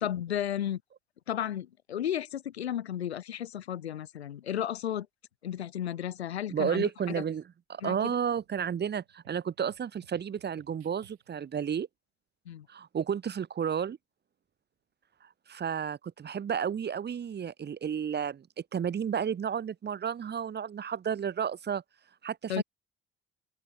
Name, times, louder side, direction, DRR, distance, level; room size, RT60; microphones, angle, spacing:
voice 1, 0.0-0.8 1.3-5.1 5.4-6.9 7.2-7.3 7.8-8.1 12.5-12.7 22.5-22.6, left 10 dB, 85° left, 0.7 m, -33 dB
voice 2, 6.5-7.4 7.7-11.9 12.7-14.0 15.5-18.5 18.7-21.8 22.2-22.6, right 8 dB, 35° right, 1.0 m, -32 dB
sound 1, 8.2-11.6, right 13 dB, 80° right, 7.8 m, -61 dB
open air
figure-of-eight pair, 50°, 31 cm